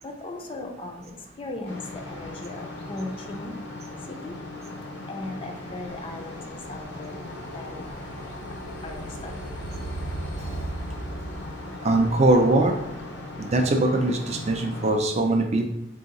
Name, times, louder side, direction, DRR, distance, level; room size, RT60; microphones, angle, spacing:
voice 1, 0.0-3.6 4.1-4.4 5.1-8.2 8.8-9.4, left 2 dB, 30° left, 2 dB, 0.4 m, -38 dB
sound 1, 1.7-14.9, left 2 dB, 65° left, 0.7 m, -39 dB
sound 2, 3.0-14.1, right 1 dB, 85° left, 1.4 m, -40 dB
voice 2, 11.8-12.7 13.4-15.7, right 2 dB, 35° right, 4 dB, 0.4 m, -21 dB
3.8 x 2.8 x 3.9 m, 0.86 s
head